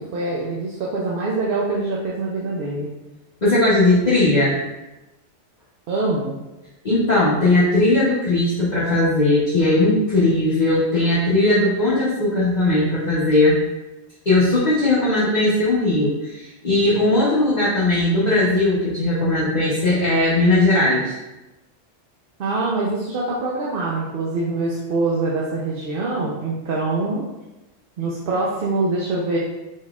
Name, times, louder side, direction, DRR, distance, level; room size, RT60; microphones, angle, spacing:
voice 1, 0.0-2.9 5.9-6.4 22.4-27.2 28.0-29.4, right 3 dB, 55° right, -4 dB, 0.7 m, -24 dB
voice 2, 3.4-4.6 6.8-13.6 14.3-21.2, left 2 dB, 40° left, -10 dB, 1.0 m, -18 dB
4.2 x 4.0 x 2.3 m, 1.0 s
omnidirectional pair, 1.2 m